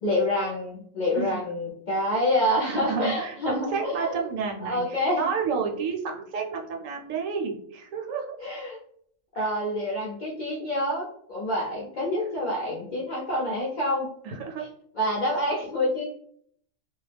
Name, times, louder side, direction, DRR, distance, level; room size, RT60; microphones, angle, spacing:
voice 1, 0.0-4.1 4.6-5.3 8.4-8.8 9.4-14.1 15.0-16.1, left 1 dB, 60° left, -5 dB, 0.5 m, -27 dB
voice 2, 2.6-8.3 9.4-9.5 14.2-14.7, right 5 dB, 75° right, 1 dB, 0.9 m, -30 dB
2.3 x 2.0 x 3.2 m, 0.65 s
omnidirectional pair, 1.4 m